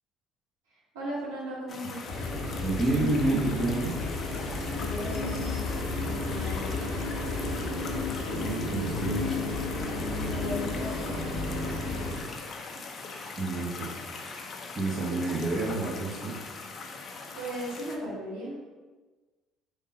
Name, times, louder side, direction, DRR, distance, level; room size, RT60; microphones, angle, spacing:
voice 1, 0.7-2.0 4.7-6.8 10.3-12.0 17.3-18.6, equal, 85° right, -7 dB, 1.3 m, -38 dB
sound 1, 1.7-18.0, left 4 dB, 45° left, 0.6 m, -41 dB
sound 2, 2.1-12.2, left 2 dB, 85° left, 0.8 m, -32 dB
voice 2, 2.6-3.9 8.3-9.4 13.3-16.4, right 2 dB, 35° right, -3 dB, 1.1 m, -29 dB
3.6 x 2.6 x 4.1 m, 1.3 s
hypercardioid pair, 60°, 0 cm